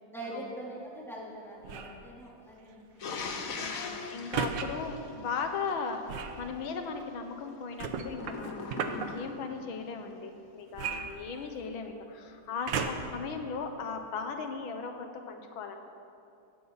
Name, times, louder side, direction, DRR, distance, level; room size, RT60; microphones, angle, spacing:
voice 1, 0.1-3.4, right 1 dB, ahead, -6 dB, 3.2 m, -43 dB
sound 1, 1.6-2.0 4.3-4.7 6.1-6.4 7.8-9.1 10.7-11.7 12.7-13.2 13.9-14.0, right 7 dB, 70° right, 1.6 m, -34 dB
sound 2, 3.0-5.7 8.1-9.6, left 4 dB, 50° left, 1.3 m, -39 dB
voice 2, 3.6-6.0 6.4-15.8, left 5 dB, 85° left, 5 dB, 1.8 m, -37 dB
16.5 x 15.0 x 4.1 m, 2.6 s
omnidirectional pair, 2.1 m